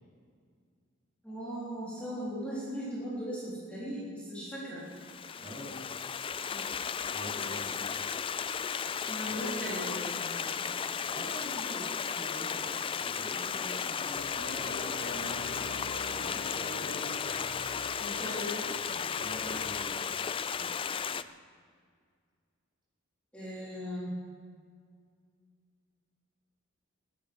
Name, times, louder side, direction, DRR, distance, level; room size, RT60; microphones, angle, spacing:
voice 1, 1.2-4.8 6.4-6.7 9.1-10.6 18.0-19.0 23.3-24.1, equal, 5° left, -9 dB, 3.9 m, -38 dB
Stream, 4.9-21.2, left 7 dB, 25° left, 0.3 m, -35 dB
voice 2, 5.4-5.8 7.1-7.8 9.3-9.4 11.1-17.2 19.1-20.2 20.5-20.8, equal, 20° right, -7 dB, 5.3 m, -45 dB
sound 1, 14.1-19.8, left 3 dB, 65° left, 1.1 m, -44 dB
22.0 x 10.5 x 5.4 m, 2.1 s
head